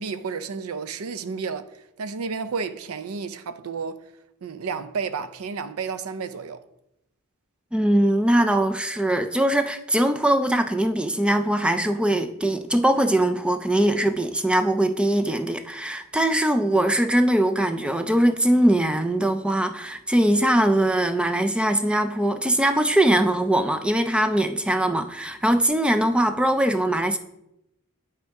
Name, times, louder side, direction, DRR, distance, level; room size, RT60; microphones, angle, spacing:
voice 1, 0.0-4.0 4.4-6.6, right 5 dB, 75° right, 0.5 m, -31 dB
voice 2, 7.7-27.2, right 1 dB, 5° right, 0.4 m, -21 dB
9.7 x 3.7 x 4.6 m
head